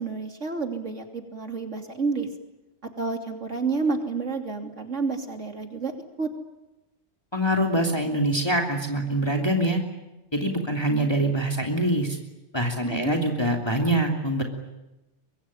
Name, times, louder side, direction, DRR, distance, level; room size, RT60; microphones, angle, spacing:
voice 1, 0.0-2.3 2.8-5.9 6.2-6.3 12.8-13.1, right 4 dB, 80° right, 4 dB, 3.3 m, -29 dB
voice 2, 7.3-9.8 10.3-12.2 12.5-14.4, right 1 dB, 20° left, 1 dB, 3.0 m, -24 dB
24.5 x 22.5 x 9.9 m, 0.98 s
omnidirectional pair, 1.2 m